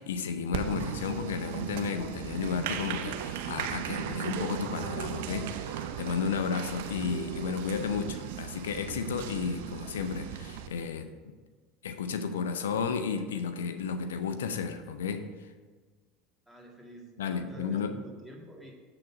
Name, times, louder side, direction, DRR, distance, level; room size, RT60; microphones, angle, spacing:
voice 1, 0.0-11.1 11.8-15.5 17.2-18.0, left 6 dB, 90° left, 8 dB, 0.5 m, -33 dB
Applause, 0.5-10.7, right 9 dB, 75° right, 0.5 m, -37 dB
voice 2, 16.5-18.7, right 1 dB, ahead, -2 dB, 1.8 m, -48 dB
7.7 x 3.9 x 5.8 m, 1.4 s
hypercardioid pair, 90°, 0 cm